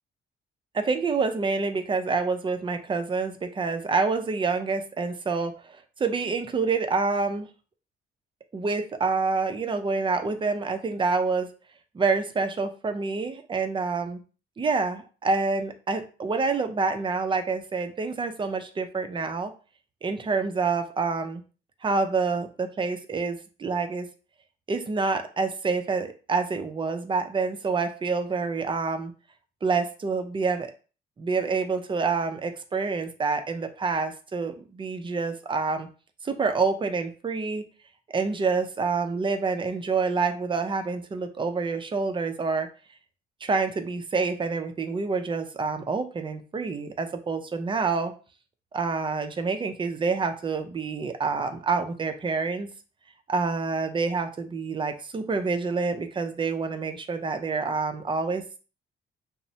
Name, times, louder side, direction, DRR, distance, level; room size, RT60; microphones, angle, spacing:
voice 1, 0.7-7.5 8.5-11.5 11.9-14.2 14.6-19.5 20.0-21.4 21.8-24.1 24.7-29.1 29.6-30.7 31.2-35.9 36.2-37.6 38.1-42.7 43.4-48.1 48.7-52.7 53.3-58.6, right 4 dB, 25° right, 7 dB, 0.4 m, -27 dB
3.0 x 2.0 x 2.7 m, 0.36 s
cardioid pair, 90°, 20 cm